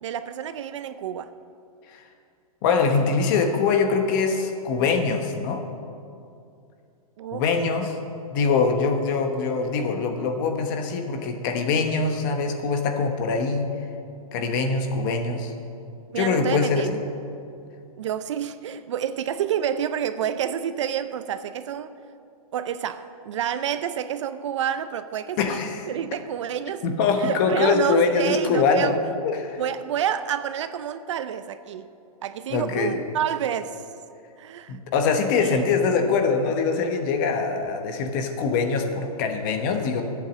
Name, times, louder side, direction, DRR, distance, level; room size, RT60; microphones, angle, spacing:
voice 1, 0.0-1.3 7.2-7.4 16.1-16.9 18.0-21.9 22.5-25.5 25.9-26.8 27.1-29.0 29.6-31.9 32.2-33.8 34.4-34.8 35.4-35.6, right 9 dB, 55° right, 12 dB, 0.5 m, -28 dB
voice 2, 2.6-5.6 7.3-8.0 8.3-13.7 14.3-15.5 16.2-17.0 25.4-25.9 26.8-29.0 29.2-29.6 32.5-33.0 34.7-40.0, left 5 dB, 35° left, 5 dB, 1.1 m, -23 dB
12.5 x 8.4 x 7.3 m, 2.5 s
hypercardioid pair, 155°, 19 cm